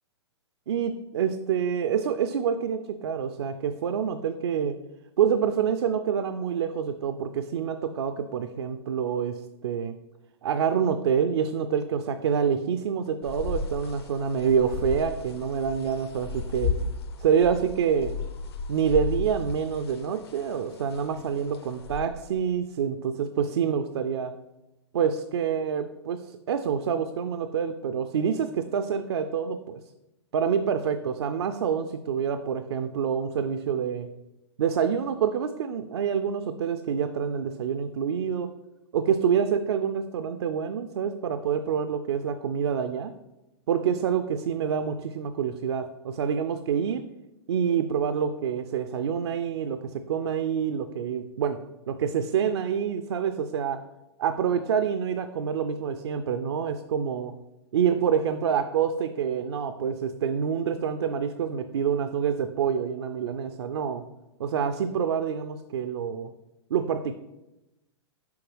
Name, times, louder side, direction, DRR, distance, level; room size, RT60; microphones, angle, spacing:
voice 1, 0.7-4.8 5.2-10.0 10.4-16.7 17.2-18.1 18.7-24.3 24.9-29.8 30.3-34.1 34.6-38.5 38.9-43.1 43.7-47.0 47.5-51.6 51.9-53.8 54.2-57.3 57.7-64.0 64.4-66.3 66.7-67.1, right 7 dB, 65° right, 8 dB, 0.4 m, -27 dB
sound 1, 13.2-22.0, left 4 dB, 60° left, 0.7 m, -34 dB
6.9 x 4.6 x 3.2 m, 0.96 s
figure-of-eight pair, 110°, 15 cm